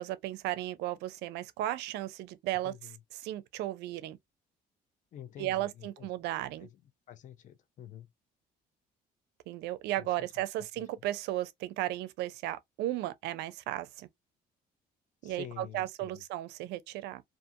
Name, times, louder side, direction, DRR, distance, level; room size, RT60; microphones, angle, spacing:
voice 1, 0.0-2.7 3.2-4.2 5.4-6.7 9.5-14.1 15.2-17.2, right 15 dB, 85° right, 0.4 m, -35 dB
voice 2, 2.6-3.0 5.1-6.1 6.6-6.7 7.1-8.1 10.0-10.3 10.8-10.9 15.2-16.2, left 11 dB, 45° left, 0.5 m, -48 dB
2.4 x 2.4 x 2.6 m
cardioid pair, 110°, 17 cm